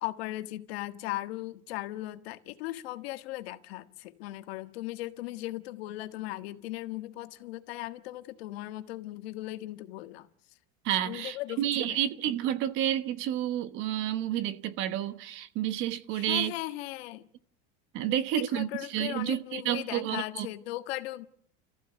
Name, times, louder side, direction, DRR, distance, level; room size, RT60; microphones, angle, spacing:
voice 1, 0.0-10.3 11.0-12.0 16.1-17.3 18.1-21.3, left 17 dB, 65° left, 1.6 m, -38 dB
voice 2, 10.8-16.5 17.9-20.5, right 12 dB, 35° right, 1.1 m, -30 dB
29.5 x 15.0 x 8.2 m
supercardioid pair, 175°, 33 cm